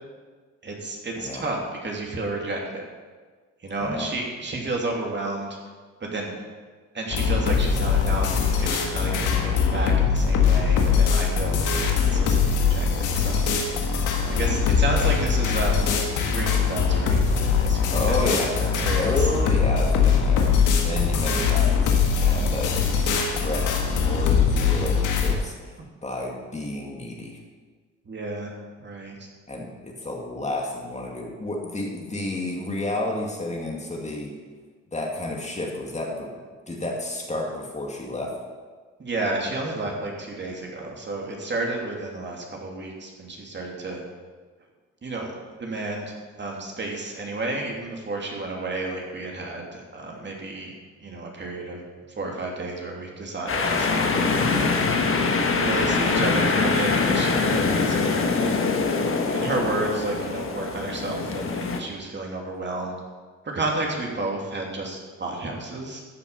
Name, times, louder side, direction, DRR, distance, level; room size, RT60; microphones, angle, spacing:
voice 1, 0.6-2.8 3.6-5.5 6.0-6.3 6.9-13.4 14.3-15.9 16.3-18.2 18.5-19.3 22.5-22.6 28.1-28.5 28.8-29.3 39.0-44.0 45.0-45.3 45.6-50.7 51.0-51.8 52.1-54.8 55.5-58.6 59.3-63.0 63.5-66.0, right 2 dB, 35° right, -1 dB, 2.7 m, -31 dB
voice 2, 3.8-4.1 14.9-15.1 17.9-18.6 18.9-22.8 23.1-27.4 29.5-34.4 34.9-36.3 36.7-38.3, left 1 dB, 25° left, 0 dB, 2.2 m, -31 dB
sound 1, 7.1-25.3, left 6 dB, 80° left, 1.8 m, -22 dB
sound 2, 53.5-61.8, left 4 dB, 45° left, 1.4 m, -23 dB
13.5 x 7.1 x 5.6 m, 1.4 s
cardioid pair, 90°, 30 cm